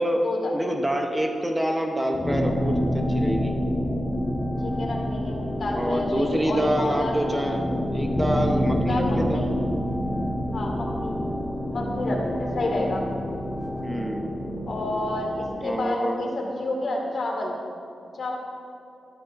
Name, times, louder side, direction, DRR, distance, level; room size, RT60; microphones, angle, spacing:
voice 1, 0.0-0.5 4.6-7.2 8.9-9.5 10.5-11.2 11.7-13.0 14.7-17.6 18.1-18.4, left 2 dB, 55° left, 0 dB, 1.9 m, -29 dB
voice 2, 0.5-3.5 5.7-7.7 7.9-9.4 13.8-14.3 15.6-16.2, equal, 10° right, 2 dB, 0.8 m, -26 dB
sound 1, 2.1-15.5, equal, 30° left, 1.4 m, -27 dB
13.0 x 11.5 x 2.6 m, 2.5 s
wide cardioid pair, 100°, 0 cm